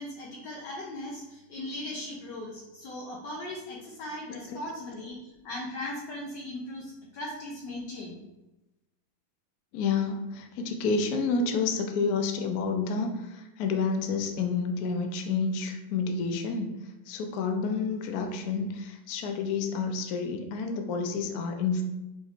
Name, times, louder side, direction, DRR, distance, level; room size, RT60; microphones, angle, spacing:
voice 1, 0.0-8.2, left 1 dB, 70° left, -2 dB, 1.2 m, -38 dB
voice 2, 9.7-16.7 17.1-21.8, left 4 dB, 90° left, 4 dB, 0.8 m, -29 dB
5.1 x 3.2 x 2.4 m, 0.99 s
omnidirectional pair, 2.2 m